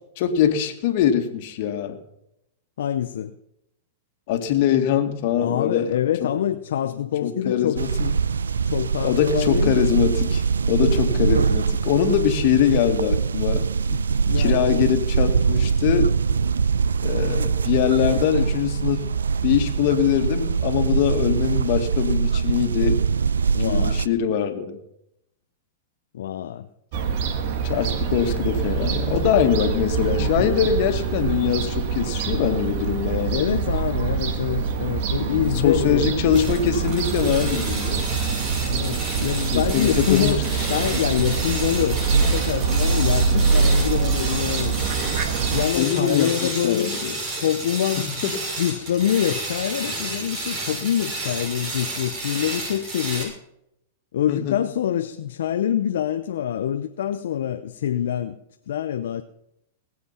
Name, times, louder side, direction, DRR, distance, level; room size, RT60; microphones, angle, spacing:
voice 1, 0.2-2.0 4.3-6.3 7.2-8.1 9.0-10.4 10.7-13.7 14.3-16.1 17.0-19.0 19.4-23.0 23.6-24.8 27.6-33.5 35.3-38.0 39.5-40.4 45.7-47.1 48.2-48.3 54.3-54.6, left 9 dB, 55° left, 2.0 m, -23 dB
voice 2, 2.8-3.3 5.4-7.8 8.6-10.0 11.1-11.3 13.9-14.8 17.3-17.6 23.5-24.0 26.1-26.7 30.2-30.5 33.3-36.2 38.7-44.8 45.5-46.9 47.4-48.2 48.6-53.3 54.1-58.4 58.7-59.2, left 10 dB, 70° left, 0.7 m, -25 dB
sound 1, 7.8-24.1, right 5 dB, 90° right, 0.5 m, -23 dB
Fowl / Gull seagull, 26.9-45.7, right 5 dB, 55° right, 1.7 m, -24 dB
sound 2, 36.3-53.2, right 2 dB, 40° right, 6.8 m, -31 dB
20.0 x 7.8 x 5.7 m
hypercardioid pair, 110°, 0 cm